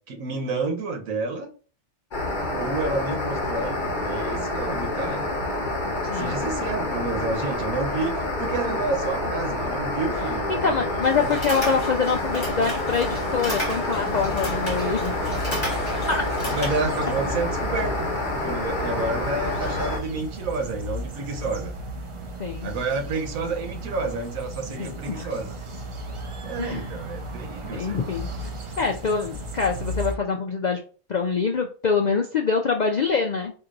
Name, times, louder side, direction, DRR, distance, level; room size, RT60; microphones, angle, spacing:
voice 1, 0.1-1.5 2.5-5.3 6.1-8.1 8.4-11.4 16.2-18.1 18.4-21.7 22.6-25.6 26.4-28.1, right 3 dB, 85° right, 5 dB, 1.4 m, -30 dB
sound 1, 2.1-20.0, left 2 dB, 40° left, 1.1 m, -28 dB
voice 2, 10.5-15.2 16.1-16.2 22.4-22.7 24.8-25.3 26.6-26.9 27.7-28.3 28.8-30.8 31.1-33.5, left 5 dB, 65° left, 3 dB, 0.4 m, -25 dB
sound 2, 11.0-16.7, left 1 dB, 20° left, 1.3 m, -34 dB
sound 3, 14.1-30.2, right 1 dB, 40° right, 0.4 m, -35 dB
4.4 x 2.8 x 3.8 m, 0.38 s
omnidirectional pair, 1.4 m